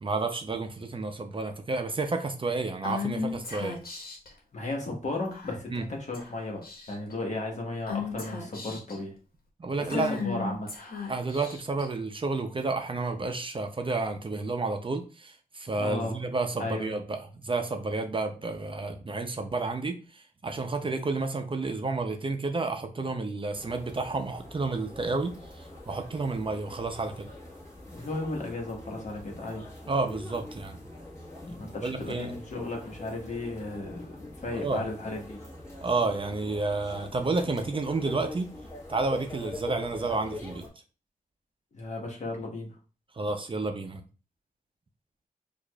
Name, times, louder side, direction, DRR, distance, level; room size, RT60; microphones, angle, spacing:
voice 1, 0.0-3.8 5.7-5.8 9.6-10.1 11.1-27.3 29.9-30.8 31.8-32.4 34.5-34.8 35.8-38.5 38.9-40.6 43.2-44.0, right 3 dB, 35° right, 5 dB, 0.5 m, -31 dB
Female speech woman speaking / Whispering, 2.8-4.3 5.3-5.7 6.1-6.3 6.6-7.1 7.9-9.0 9.9-11.8, left 5 dB, 85° left, 1.1 m, -35 dB
voice 2, 4.5-6.6 6.9-9.1 9.9-10.7 15.8-16.2 16.6-16.9 27.9-29.7 31.4-35.4 41.7-42.7, left 2 dB, 55° left, 1 dB, 1.1 m, -35 dB
sound 1, 23.5-40.7, left 1 dB, 20° left, 1.5 m, -44 dB
4.6 x 2.4 x 2.2 m, 0.35 s
wide cardioid pair, 95°, 15 cm